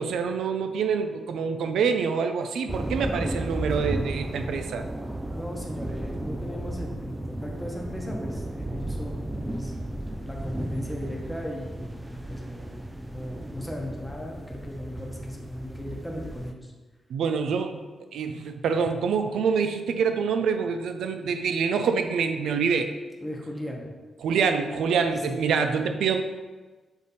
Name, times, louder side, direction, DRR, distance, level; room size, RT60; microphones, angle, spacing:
voice 1, 0.0-4.8 17.1-17.8 18.1-22.9 24.2-26.2, right 6 dB, 85° right, 7 dB, 0.4 m, -26 dB
sound 1, 2.7-16.5, right 1 dB, 10° right, 0.3 m, -34 dB
voice 2, 5.3-16.7 23.2-23.8 25.1-25.4, left 1 dB, 5° left, -1 dB, 0.9 m, -38 dB
7.1 x 3.4 x 4.0 m, 1.3 s
wide cardioid pair, 140°, 0 cm